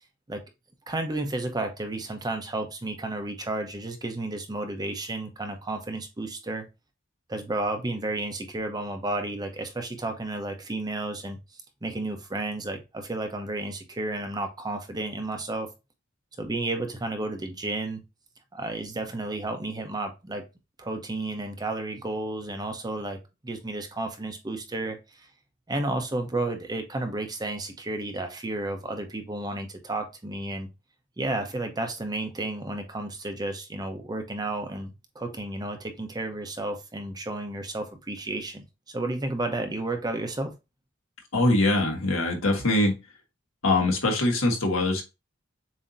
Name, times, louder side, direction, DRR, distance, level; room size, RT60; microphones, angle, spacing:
voice 1, 0.9-6.7 7.3-11.4 11.8-15.7 16.4-18.0 18.5-20.4 20.8-25.0 25.7-30.7 31.2-40.5, right 2 dB, 20° right, 0.7 m, -32 dB
voice 2, 41.3-43.0 43.6-45.0, left 2 dB, 85° left, 1.5 m, -23 dB
7.2 x 2.8 x 2.6 m
head